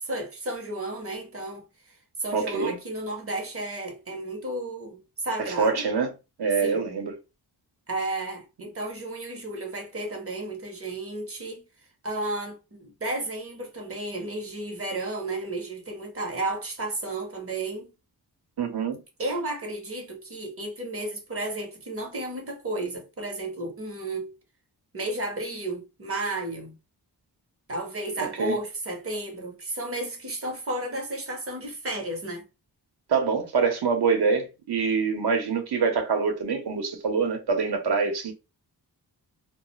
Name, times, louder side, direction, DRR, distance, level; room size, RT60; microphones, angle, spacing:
voice 1, 0.0-5.8 6.6-6.8 7.9-11.6 12.0-17.9 19.2-24.3 24.9-26.8 27.7-32.4, right 2 dB, 35° right, 0.7 m, -33 dB
voice 2, 2.3-2.8 5.6-6.1 6.4-7.1 18.6-19.0 28.4-28.6 33.1-38.3, right 5 dB, 70° right, 0.8 m, -25 dB
2.4 x 2.0 x 2.9 m
wide cardioid pair, 140°, 41 cm